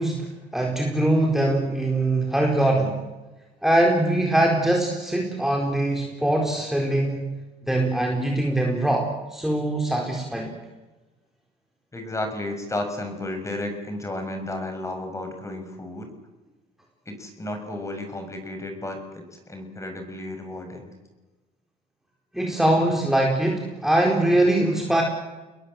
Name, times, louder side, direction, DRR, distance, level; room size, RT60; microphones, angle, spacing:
voice 1, 0.0-3.0 3.6-7.2 7.7-10.6 22.3-25.0, right 1 dB, ahead, 0 dB, 4.4 m, -22 dB
voice 2, 11.9-16.1 17.1-20.9, left 1 dB, 15° left, 6 dB, 6.4 m, -33 dB
29.0 x 21.5 x 7.8 m, 1.1 s
cardioid pair, 110°, 17 cm